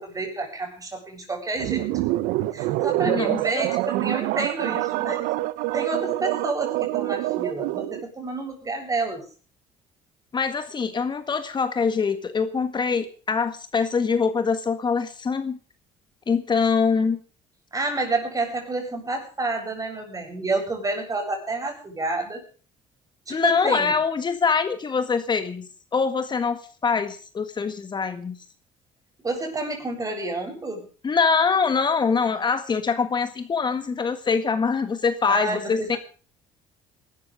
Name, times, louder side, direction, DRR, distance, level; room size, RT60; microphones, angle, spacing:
voice 1, 0.0-1.9 2.5-5.2 5.7-9.2 17.7-22.4 23.3-23.9 29.2-30.9 35.3-36.0, right 3 dB, 25° right, 4 dB, 7.8 m, -29 dB
sound 1, 1.6-8.0, right 17 dB, 85° right, 0.9 m, -26 dB
voice 2, 3.0-3.7 10.3-15.6 16.3-17.2 23.3-25.7 25.9-28.4 31.0-36.0, left 5 dB, 35° left, 9 dB, 1.8 m, -24 dB
18.5 x 13.0 x 5.1 m, 0.40 s
supercardioid pair, 85°, 13 cm